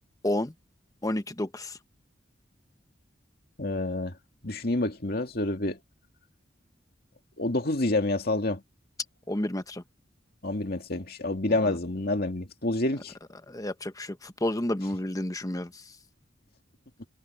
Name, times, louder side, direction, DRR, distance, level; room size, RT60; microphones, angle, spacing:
voice 1, 1.0-1.8 9.3-9.8 11.5-11.8 13.5-15.8, left 1 dB, 20° left, 1.1 m, -31 dB
voice 2, 3.6-4.2 4.4-5.8 7.4-8.6 10.4-13.1 17.0-17.1, left 2 dB, 55° left, 2.4 m, -28 dB
head